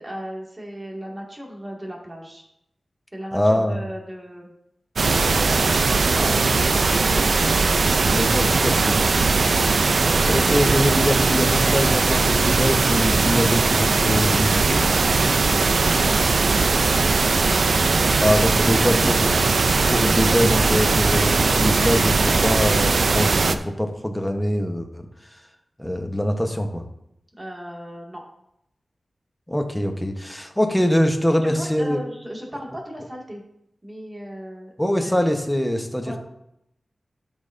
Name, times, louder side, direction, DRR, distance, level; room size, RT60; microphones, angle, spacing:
voice 1, 0.0-2.5 3.1-4.5 5.3-7.2 9.4-9.6 15.5-17.1 18.2-18.8 27.4-28.2 31.4-33.4 33.8-34.7 35.0-35.1 36.0-36.2, equal, 25° right, -2 dB, 2.2 m, -36 dB
voice 2, 3.3-3.8 8.0-9.0 10.2-14.8 18.2-19.3 19.9-25.4 25.8-26.8 29.5-32.0 34.8-36.2, equal, 5° left, 4 dB, 1.1 m, -23 dB
sound 1, 5.0-23.5, right 4 dB, 75° right, 0.5 m, -19 dB
12.0 x 5.4 x 2.7 m, 0.79 s
wide cardioid pair, 60°, 0 cm